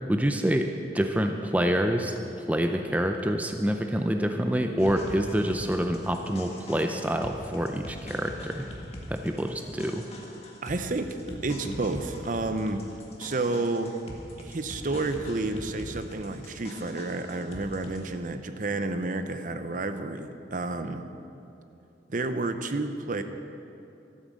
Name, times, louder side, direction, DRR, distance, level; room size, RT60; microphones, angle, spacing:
voice 1, 0.1-0.7 0.9-8.7 9.1-10.0, equal, 10° right, 5 dB, 0.5 m, -27 dB
sound 1, 4.8-18.1, equal, 35° left, 1.7 m, -42 dB
voice 2, 10.6-12.9 13.2-13.9 14.4-21.0 22.1-23.2, right 2 dB, 45° right, 9 dB, 0.7 m, -30 dB
12.5 x 9.2 x 7.4 m, 2.7 s
head